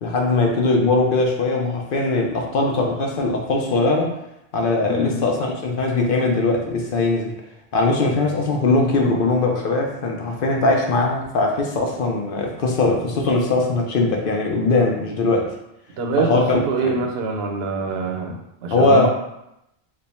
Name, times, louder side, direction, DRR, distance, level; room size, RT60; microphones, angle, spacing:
voice 1, 0.0-4.1 4.5-7.3 7.7-15.5 16.2-17.0 18.7-19.1, left 3 dB, 65° left, 1 dB, 0.8 m, -20 dB
voice 2, 4.8-5.3 16.0-19.1, right 3 dB, 80° right, 3 dB, 0.8 m, -25 dB
3.2 x 2.2 x 4.1 m, 0.83 s
omnidirectional pair, 1.0 m